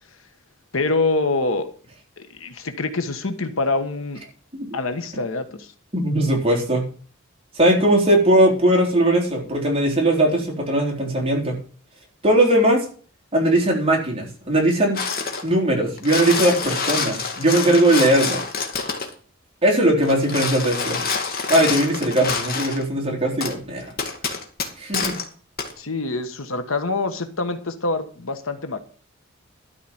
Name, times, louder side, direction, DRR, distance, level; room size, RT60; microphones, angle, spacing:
voice 1, 0.7-1.7 2.3-4.2 4.7-5.7 25.8-28.8, left 3 dB, 75° left, 8 dB, 1.4 m, -25 dB
voice 2, 5.9-6.9 7.6-11.6 12.2-12.9 13.3-15.0 15.4-18.4 19.6-21.0 21.5-23.9 24.8-25.1, right 1 dB, 30° right, -1 dB, 3.8 m, -19 dB
sound 1, 14.9-15.5 15.9-19.1 20.0-22.8 23.4-23.5 24.0-25.2 25.6-25.7, left 5 dB, 45° left, 1.9 m, -26 dB
12.5 x 5.0 x 8.7 m, 0.42 s
head